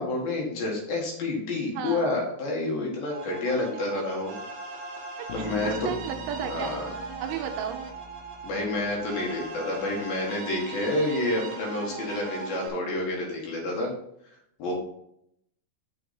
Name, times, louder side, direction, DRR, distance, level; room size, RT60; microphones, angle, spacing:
voice 1, 0.0-4.3 5.3-5.9 6.4-6.9 8.4-13.9 14.6-14.7, left 2 dB, 60° left, -1 dB, 2.6 m, -29 dB
voice 2, 1.7-2.1 5.2-5.3 5.6-6.7 7.2-7.8, right 9 dB, 80° right, 5 dB, 3.1 m, -33 dB
sound 1, 3.1-12.7, right 4 dB, 60° right, 3.1 m, -39 dB
Bass guitar, 5.3-9.3, left 1 dB, 85° left, 3.2 m, -44 dB
6.8 x 6.7 x 4.1 m, 0.75 s
omnidirectional pair, 5.8 m